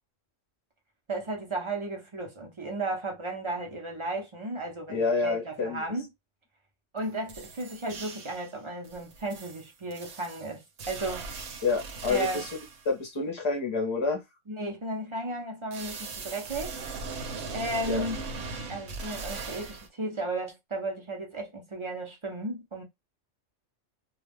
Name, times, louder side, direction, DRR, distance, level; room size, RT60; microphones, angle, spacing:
voice 1, 1.1-6.1 6.9-11.3 12.1-12.4 14.5-16.7 17.5-18.2 18.7-22.8, right 2 dB, 30° right, 0.6 m, -34 dB
voice 2, 4.9-5.8 11.6-12.5 12.8-14.2 17.9-18.0, left 4 dB, 30° left, 0.6 m, -28 dB
sound 1, 7.0-7.1 7.3-8.5 8.8-12.9 15.7-19.9, right 4 dB, 75° right, 1.0 m, -39 dB
2.3 x 2.3 x 3.3 m
omnidirectional pair, 1.3 m